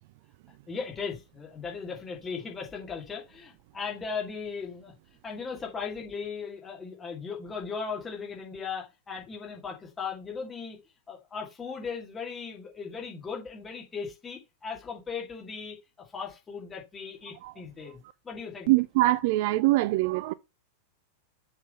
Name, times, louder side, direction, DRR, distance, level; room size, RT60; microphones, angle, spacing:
voice 1, 0.7-4.9 5.2-10.8 11.1-15.8 16.1-18.0 18.2-18.7, left 5 dB, 20° left, 2.4 m, -37 dB
voice 2, 18.7-20.3, right 18 dB, 50° right, 0.3 m, -23 dB
7.2 x 3.8 x 5.4 m
figure-of-eight pair, 90°, 0 cm